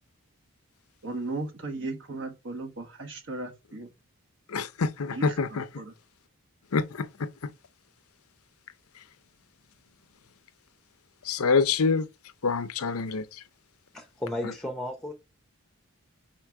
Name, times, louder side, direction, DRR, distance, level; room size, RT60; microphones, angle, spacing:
voice 1, 1.0-3.9 5.1-5.9, right 2 dB, 55° right, 1.2 m, -36 dB
voice 2, 4.5-5.6 6.7-7.5 11.3-12.1 12.4-13.2, left 4 dB, 75° left, 0.6 m, -26 dB
voice 3, 13.9-15.1, left 1 dB, ahead, 0.7 m, -34 dB
4.5 x 4.4 x 4.7 m
head